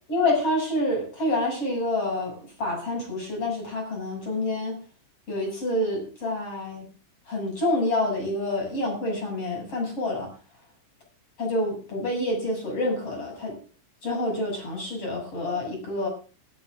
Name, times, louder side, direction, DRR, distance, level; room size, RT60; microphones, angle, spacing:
voice 1, 0.1-4.8 5.3-6.8 7.3-10.3 11.4-13.6 14.0-16.1, left 1 dB, 30° left, 1 dB, 7.5 m, -27 dB
21.5 x 13.5 x 2.5 m, 0.37 s
omnidirectional pair, 5.7 m